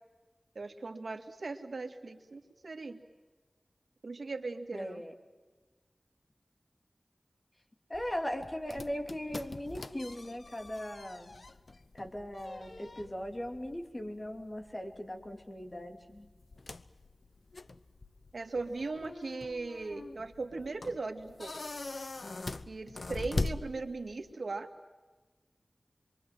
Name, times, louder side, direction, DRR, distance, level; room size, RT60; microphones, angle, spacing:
voice 1, 0.6-3.0 4.0-5.0 18.3-21.6 22.7-24.7, right 3 dB, 85° right, 5 dB, 2.1 m, -38 dB
voice 2, 4.7-5.1 7.9-11.3 11.9-16.3, equal, 30° left, 5 dB, 3.0 m, -39 dB
sound 1, 7.9-24.3, left 3 dB, 65° left, 0.9 m, -43 dB
26.5 x 23.5 x 7.7 m, 1.3 s
wide cardioid pair, 70°, 0 cm